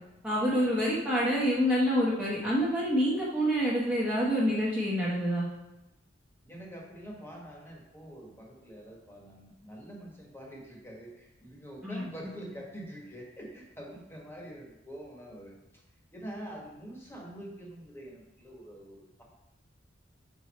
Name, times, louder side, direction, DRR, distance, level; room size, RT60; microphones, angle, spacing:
voice 1, 0.2-5.5 11.8-12.1, equal, 10° right, -7 dB, 1.0 m, -27 dB
voice 2, 6.4-15.5 16.1-19.2, right 1 dB, 15° left, -2 dB, 1.4 m, -45 dB
5.4 x 4.6 x 4.2 m, 0.97 s
head